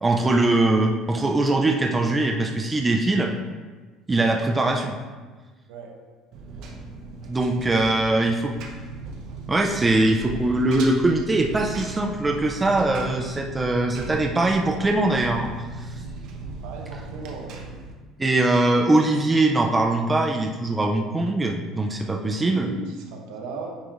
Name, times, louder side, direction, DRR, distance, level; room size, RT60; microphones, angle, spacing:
voice 1, 0.0-3.3 4.1-5.0 7.3-8.5 9.5-15.5 15.8-15.9 18.2-22.7, right 2 dB, 10° right, 2 dB, 0.3 m, -22 dB
Engine, 6.3-17.9, right 3 dB, 55° right, 0.8 m, -37 dB
voice 2, 16.6-17.6 22.2-23.8, right 4 dB, 80° right, 1 dB, 1.0 m, -37 dB
9.0 x 4.8 x 2.5 m, 1.3 s
cardioid pair, 180°, 0 cm